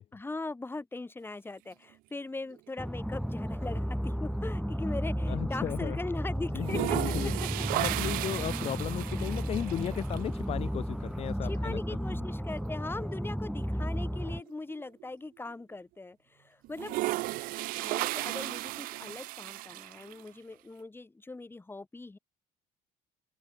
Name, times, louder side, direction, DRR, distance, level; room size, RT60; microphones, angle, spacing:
voice 1, 0.1-7.5 11.4-17.0 17.8-22.2, left 3 dB, 15° left, 4.6 m, -40 dB
sound 1, 2.5-3.3 3.6-5.6 5.9-6.0 6.5-10.2 11.7-11.8 12.2-12.3 12.6-15.0 15.5-15.6 16.6-20.3, right 20 dB, 75° right, 0.7 m, -35 dB
sound 2, 2.8-14.4, equal, ahead, 0.5 m, -33 dB
voice 2, 5.3-6.0 6.5-7.3 7.7-11.8, left 11 dB, 45° left, 0.6 m, -35 dB
cardioid pair, 105°, 15 cm